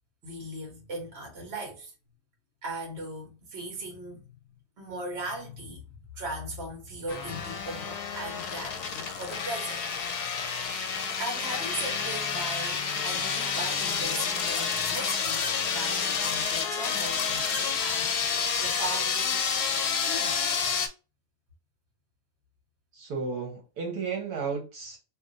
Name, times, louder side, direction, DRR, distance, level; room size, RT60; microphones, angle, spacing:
voice 1, 0.2-1.9 2.6-4.4 4.8-5.8 6.1-9.8 11.2-19.5 20.0-20.4, right 2 dB, 45° right, 1.4 m, -38 dB
sound 1, 7.1-20.9, left 6 dB, 85° left, 1.2 m, -29 dB
voice 2, 22.9-25.0, right 5 dB, 75° right, 1.3 m, -33 dB
2.9 x 2.5 x 3.8 m
omnidirectional pair, 1.7 m